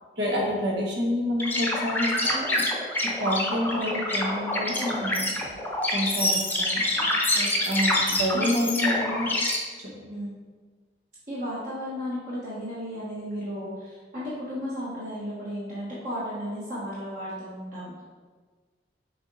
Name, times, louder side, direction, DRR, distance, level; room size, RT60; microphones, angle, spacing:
voice 1, 0.2-2.6 3.2-5.4 5.9-6.8 7.7-9.3 9.8-9.9, equal, 80° right, -3 dB, 1.5 m, -28 dB
sound 1, 1.4-9.6, left 1 dB, 10° left, 0.7 m, -26 dB
voice 2, 6.9-7.6 8.3-8.7 9.9-10.3 11.3-18.0, equal, 50° right, -9 dB, 1.5 m, -34 dB
7.0 x 3.7 x 4.1 m, 1.4 s
head